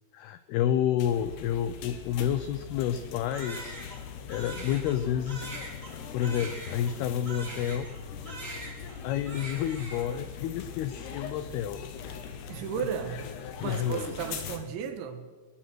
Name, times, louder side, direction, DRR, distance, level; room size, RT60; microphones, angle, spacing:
voice 1, 0.1-3.8 4.3-5.5 6.1-7.9 9.0-11.8 12.8-13.2 13.6-14.2, left 10 dB, 85° left, 2.2 m, -30 dB
sound 1, 1.0-14.6, left 7 dB, 65° left, 3.4 m, -41 dB
Crying sobbing, 3.3-8.0 8.3-9.0 9.3-10.2, right 2 dB, 15° right, 3.7 m, -42 dB
voice 2, 12.5-13.3 13.6-15.3, right 7 dB, 75° right, 3.7 m, -34 dB
20.5 x 20.5 x 6.3 m
omnidirectional pair, 5.5 m